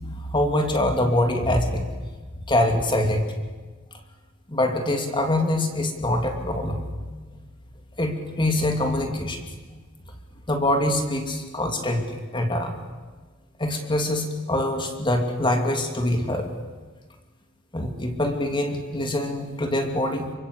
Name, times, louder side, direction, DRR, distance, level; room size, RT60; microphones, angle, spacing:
voice 1, 0.0-1.9 2.5-3.3 4.5-6.8 8.0-9.4 10.5-12.8 13.6-16.5 17.7-20.3, left 1 dB, 25° left, 4 dB, 2.9 m, -24 dB
28.0 x 23.5 x 8.4 m, 1.3 s
head